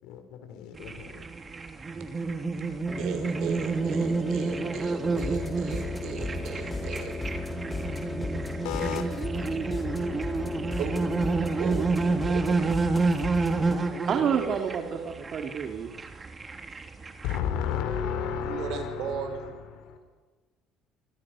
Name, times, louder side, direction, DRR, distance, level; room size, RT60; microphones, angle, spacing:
voice 1, 0.0-1.2 8.6-9.0 17.2-20.0, left 8 dB, 80° left, 7 dB, 5.3 m, -32 dB
sound 1, 0.7-17.4, right 3 dB, 30° right, 3.1 m, -29 dB
sound 2, 2.9-12.2, left 1 dB, 10° left, 3.5 m, -39 dB
voice 2, 3.0-7.1 10.8-11.0 11.6-11.9 12.3-12.7 13.9-15.0 18.4-19.6, right 7 dB, 70° right, 6 dB, 6.0 m, -36 dB
sound 3, 5.1-13.8, left 3 dB, 25° left, 5.9 m, -36 dB
voice 3, 14.0-15.9, right 7 dB, 50° right, 4 dB, 3.1 m, -29 dB
28.5 x 25.5 x 6.6 m, 1.3 s
supercardioid pair, 95°, 0 cm